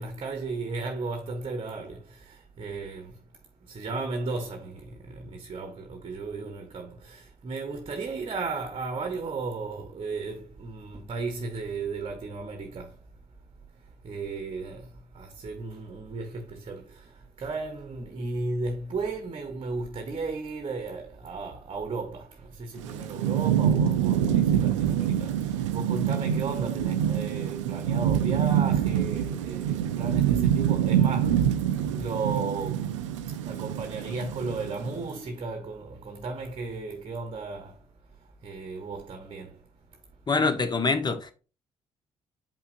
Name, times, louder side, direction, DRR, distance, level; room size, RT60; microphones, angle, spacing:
voice 1, 0.0-3.2 3.6-13.0 14.0-31.6 31.9-33.0 33.3-37.9 38.2-39.6, right 3 dB, 35° right, 1.0 m, -35 dB
Thunderstorm / Rain, 22.8-35.0, right 9 dB, 70° right, 0.5 m, -26 dB
voice 2, 40.3-41.3, left 4 dB, 25° left, 1.1 m, -25 dB
7.1 x 5.6 x 2.6 m
figure-of-eight pair, 45°, 16 cm